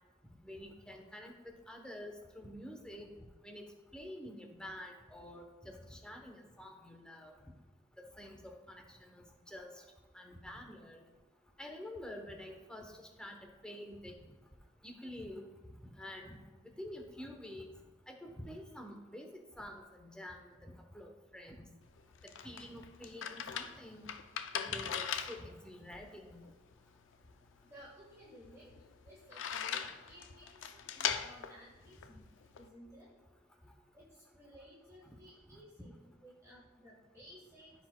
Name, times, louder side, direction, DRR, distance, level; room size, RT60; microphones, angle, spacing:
voice 1, 0.4-1.3 1.7-3.1 3.4-3.6 3.9-7.3 8.0-9.7 10.1-11.0 11.6-13.4 13.6-14.1 14.8-15.5 15.9-16.4 16.8-17.7 18.1-19.3 19.6-21.7 22.4-24.1 24.6-26.4, left 1 dB, 5° left, 2 dB, 0.8 m, -48 dB
sound 1, 21.8-32.7, left 8 dB, 90° left, 0.4 m, -41 dB
voice 2, 27.6-32.3 32.5-33.1 33.9-35.9 36.2-37.7, equal, 15° right, -7 dB, 1.5 m, -57 dB
14.0 x 4.8 x 2.2 m, 1.2 s
head